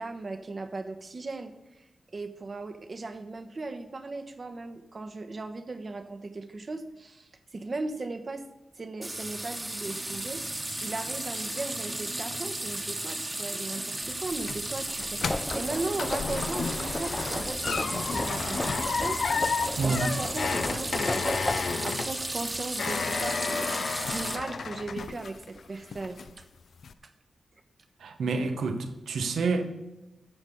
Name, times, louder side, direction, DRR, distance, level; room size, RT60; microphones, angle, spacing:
voice 1, 0.0-1.8 2.1-8.4 8.7-19.2 19.8-26.4, right 3 dB, 50° right, 1.1 m, -37 dB
sound 1, 9.0-24.4, right 1 dB, 20° right, 1.3 m, -35 dB
sound 2, 14.0-25.6 25.9-26.4 26.8-26.9, left 5 dB, 75° left, 0.5 m, -32 dB
sound 3, 15.2-21.8, left 1 dB, 20° left, 0.5 m, -35 dB
voice 2, 19.8-20.2 28.0-29.6, right 4 dB, 90° right, 1.0 m, -28 dB
9.0 x 6.2 x 7.0 m
cardioid pair, 60°, 0 cm